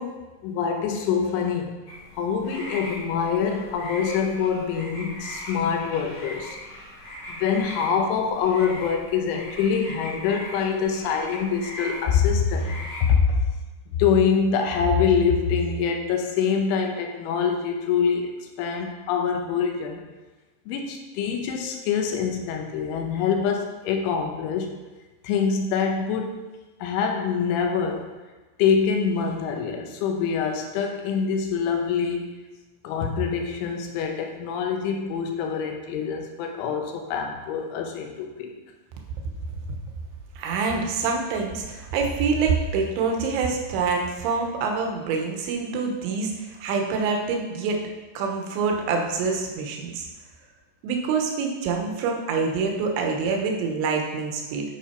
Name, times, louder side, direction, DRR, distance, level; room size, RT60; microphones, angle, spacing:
voice 1, 0.0-1.8 2.1-6.6 7.3-13.5 13.9-18.3 18.6-20.1 20.7-24.8 25.2-26.4 26.8-28.1 28.6-32.3 32.8-38.6, left 6 dB, 80° left, 3 dB, 3.1 m, -25 dB
sound 1, 1.9-13.1, left 1 dB, 55° left, 1.8 m, -39 dB
voice 2, 40.4-46.3 46.6-47.8 48.1-50.1 50.8-54.6, right 4 dB, 75° right, 2 dB, 3.0 m, -26 dB
10.5 x 5.4 x 4.4 m, 1.2 s
omnidirectional pair, 5.8 m